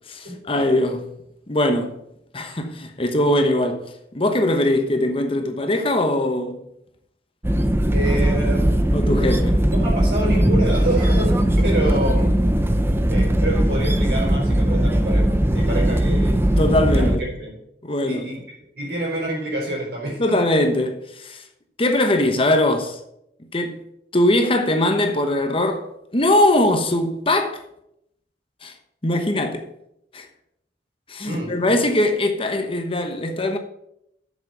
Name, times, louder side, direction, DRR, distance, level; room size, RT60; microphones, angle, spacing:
voice 1, 0.1-1.1 1.5-1.9 2.3-6.6 8.9-9.6 16.5-17.3 17.8-18.3 20.2-21.4 21.8-23.0 23.5-23.8 24.1-25.8 26.1-27.6 28.6-28.7 29.0-29.6 30.1-30.3 31.1-33.6, left 1 dB, 30° left, 1.1 m, -21 dB
sound 1, 7.4-17.2, right 1 dB, 15° right, 0.6 m, -19 dB
voice 2, 7.9-8.9 9.7-12.4 13.1-16.5 16.9-17.6 18.0-18.4 18.7-20.4 31.2-31.8, right 1 dB, 65° right, 4.7 m, -27 dB
7.4 x 7.4 x 6.8 m
head